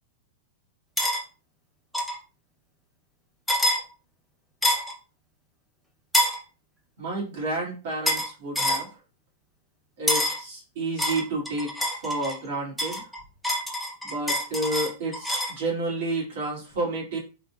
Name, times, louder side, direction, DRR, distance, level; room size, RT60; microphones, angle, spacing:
sound 1, 1.0-1.2 1.9-2.2 3.5-3.8 4.6-4.9 6.1-6.4 8.1-8.3 8.6-8.9 10.1-10.4 11.0-12.4 12.8-15.6, equal, ahead, 0.6 m, -26 dB
voice 1, 7.0-8.9 10.0-13.0 14.0-17.2, right 2 dB, 60° right, -3 dB, 2.2 m, -30 dB
4.1 x 3.9 x 2.3 m, 0.33 s
supercardioid pair, 165°, 0 cm